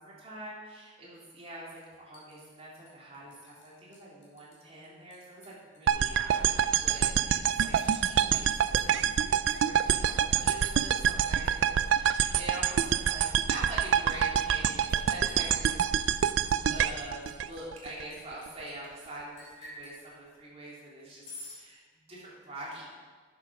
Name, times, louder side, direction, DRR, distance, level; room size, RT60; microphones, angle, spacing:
voice 1, 0.0-16.2 16.6-22.9, right 1 dB, 35° right, -6 dB, 2.8 m, -44 dB
Liquid, 1.8-3.7 3.9-4.6 4.8-18.7 19.4-20.0 21.2-21.6, left 2 dB, 40° left, 2.9 m, -52 dB
sound 1, 5.9-18.0, right 9 dB, 75° right, 0.4 m, -26 dB
8.5 x 7.1 x 6.0 m, 1.5 s
head